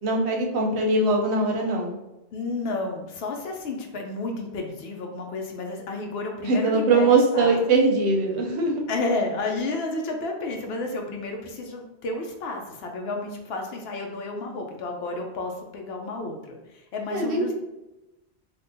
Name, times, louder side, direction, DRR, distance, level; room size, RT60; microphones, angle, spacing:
voice 1, 0.0-2.0 6.4-8.8 17.1-17.5, right 3 dB, 80° right, 0 dB, 0.9 m, -21 dB
voice 2, 2.3-7.6 8.9-17.5, left 3 dB, 70° left, 3 dB, 0.8 m, -31 dB
3.5 x 2.4 x 2.6 m, 0.99 s
omnidirectional pair, 1.1 m